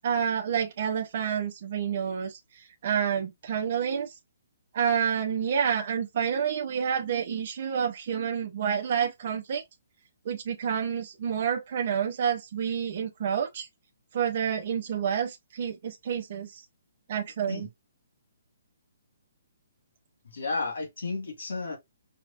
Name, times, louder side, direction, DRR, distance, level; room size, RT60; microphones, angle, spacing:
voice 1, 0.0-2.4 2.8-4.1 4.7-9.6 10.2-13.7 14.1-16.6 17.1-17.7, right 7 dB, 35° right, 0.6 m, -29 dB
voice 2, 20.2-21.8, left 3 dB, 65° left, 1.9 m, -32 dB
4.7 x 2.3 x 2.5 m
hypercardioid pair, 175°, 0 cm